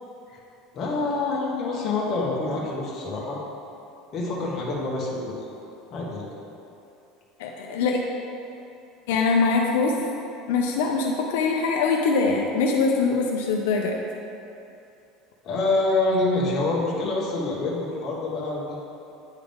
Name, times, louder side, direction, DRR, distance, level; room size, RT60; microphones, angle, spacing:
voice 1, 0.7-3.4 4.1-5.3 5.9-6.3 15.4-18.7, left 2 dB, 35° left, -4 dB, 1.3 m, -26 dB
voice 2, 7.4-8.0 9.1-9.9 10.5-14.0, left 4 dB, 85° left, 1 dB, 0.5 m, -23 dB
8.9 x 3.7 x 3.5 m, 2.8 s
supercardioid pair, 145°, 0 cm